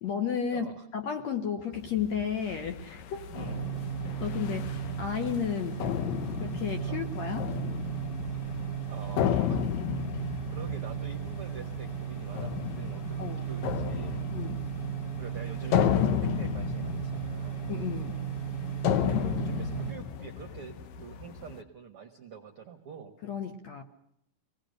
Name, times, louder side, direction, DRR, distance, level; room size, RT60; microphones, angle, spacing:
voice 1, 0.0-3.2 4.2-5.8 6.4-7.5 13.2-13.5 14.3-14.6 17.7-18.2 23.2-23.8, left 7 dB, 60° left, 6 dB, 2.1 m, -33 dB
voice 2, 0.5-0.9 3.3-3.6 6.1-6.3 6.8-7.1 8.9-9.7 10.5-14.3 15.2-17.6 18.9-23.2, right 7 dB, 60° right, 5 dB, 1.4 m, -46 dB
sound 1, 1.7-21.6, left 9 dB, 85° left, 1.5 m, -33 dB
sound 2, 3.4-19.9, right 8 dB, 30° left, 2.3 m, -35 dB
25.0 x 19.0 x 6.5 m, 0.72 s
omnidirectional pair, 4.5 m